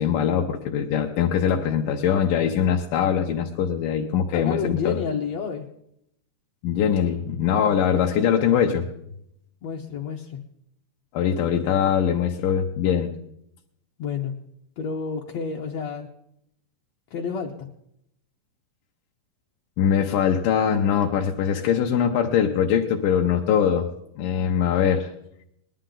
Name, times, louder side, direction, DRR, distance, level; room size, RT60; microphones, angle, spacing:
voice 1, 0.0-5.0 6.6-8.9 11.1-13.1 19.8-23.9 24.2-25.1, left 8 dB, 85° left, 1 dB, 2.5 m, -22 dB
voice 2, 4.3-5.7 9.6-10.4 14.0-14.4 14.8-16.1 17.1-17.7, left 6 dB, 65° left, 0 dB, 1.8 m, -30 dB
20.0 x 11.5 x 3.8 m, 0.75 s
omnidirectional pair, 3.8 m